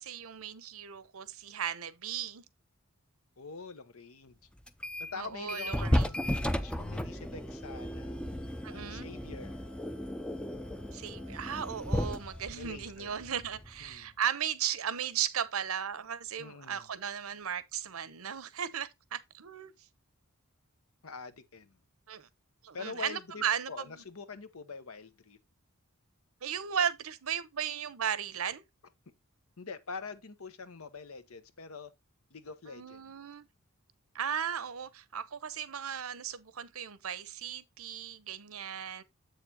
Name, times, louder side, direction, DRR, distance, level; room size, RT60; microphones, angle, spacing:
voice 1, 0.0-2.4 5.1-6.1 8.6-9.1 10.9-19.7 22.1-22.3 22.6-24.0 26.4-28.6 32.7-33.5 34.1-39.0, right 8 dB, 85° right, 0.8 m, -36 dB
voice 2, 3.4-4.4 5.1-8.2 8.7-9.6 12.5-13.2 13.8-14.1 16.4-16.9 21.0-21.8 22.7-25.4 29.6-31.9 32.3-33.1, left 4 dB, 90° left, 1.0 m, -45 dB
sound 1, 4.7-5.2 5.5-13.9, equal, 5° left, 0.4 m, -34 dB
Wind instrument woodwind instrument, 5.9-12.7, left 2 dB, 70° left, 1.7 m, -59 dB
7.8 x 6.6 x 2.8 m
head